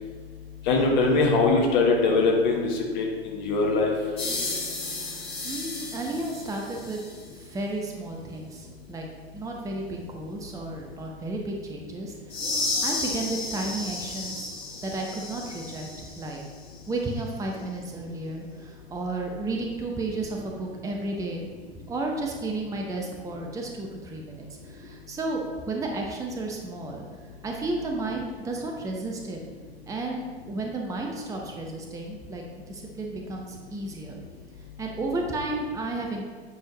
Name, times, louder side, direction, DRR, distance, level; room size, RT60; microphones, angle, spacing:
voice 1, 0.7-3.9, left 3 dB, 45° left, 0 dB, 1.3 m, -22 dB
sound 1, 4.2-7.2 12.3-16.3, left 2 dB, 15° left, 2.1 m, -33 dB
voice 2, 5.4-7.0 7.3-9.1 9.3-12.4 12.8-14.5 14.8-16.4 16.9-21.4 21.9-27.0 27.4-29.4 29.9-34.2 34.8-36.2, right 2 dB, 10° right, 0 dB, 0.7 m, -33 dB
9.4 x 4.4 x 3.1 m, 1.5 s
figure-of-eight pair, 90°, 31 cm